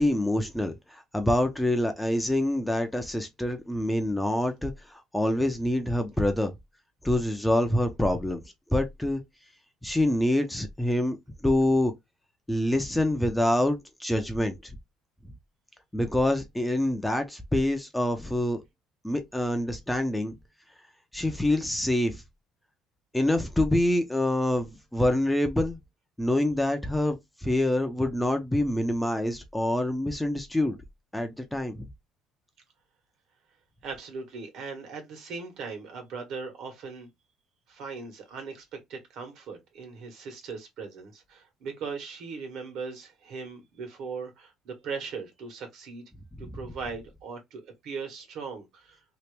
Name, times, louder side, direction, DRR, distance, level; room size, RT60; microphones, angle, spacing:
voice 1, 0.0-6.5 7.0-8.4 8.7-9.2 9.8-11.2 11.4-11.9 12.5-14.7 15.9-18.6 19.0-20.3 21.1-22.2 23.1-25.8 26.2-30.8 31.1-31.9, left 1 dB, 5° left, 0.5 m, -26 dB
voice 2, 33.8-37.1 37.7-46.0 46.4-49.0, right 5 dB, 65° right, 1.4 m, -39 dB
2.9 x 2.5 x 3.2 m
cardioid pair, 135°, 0 cm